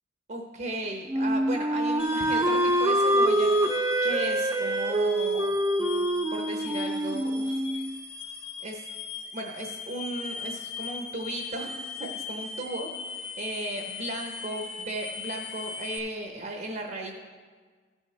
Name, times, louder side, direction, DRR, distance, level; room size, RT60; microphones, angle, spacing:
voice 1, 0.3-7.8 8.6-8.9 9.3-17.1, right 2 dB, 45° right, 2 dB, 0.9 m, -36 dB
Wind instrument woodwind instrument, 1.1-7.9, right 1 dB, 20° right, 0.4 m, -25 dB
sound 1, 2.0-16.0, left 5 dB, 30° left, 1.0 m, -39 dB
14.5 x 6.4 x 3.3 m, 1.5 s
head